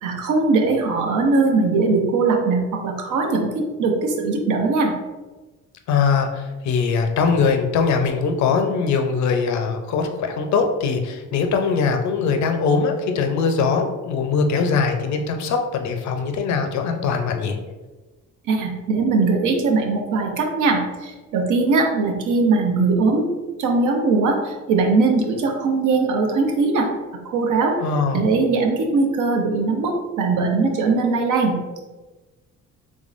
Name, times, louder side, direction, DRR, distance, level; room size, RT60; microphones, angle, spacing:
voice 1, 0.0-4.9 18.5-23.3 23.6-26.9 27.2-27.8 28.1-31.6, right 3 dB, 80° right, 3 dB, 0.7 m, -20 dB
voice 2, 5.9-17.6 27.8-28.3, left 5 dB, 70° left, 5 dB, 0.5 m, -21 dB
3.6 x 3.1 x 2.5 m, 1.2 s
cardioid pair, 90°, 30 cm